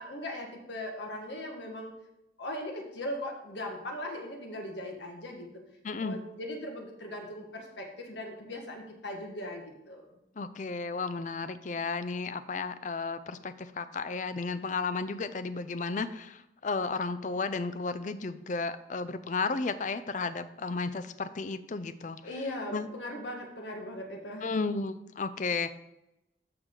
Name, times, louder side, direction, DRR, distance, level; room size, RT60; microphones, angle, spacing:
voice 1, 0.0-1.9 2.4-5.6 6.0-10.2 22.2-24.6, left 1 dB, 70° left, 2 dB, 1.6 m, -39 dB
voice 2, 5.8-6.2 10.4-22.2 22.7-22.9 24.4-25.7, left 4 dB, 40° left, 12 dB, 0.5 m, -33 dB
13.5 x 4.8 x 3.8 m, 0.89 s
head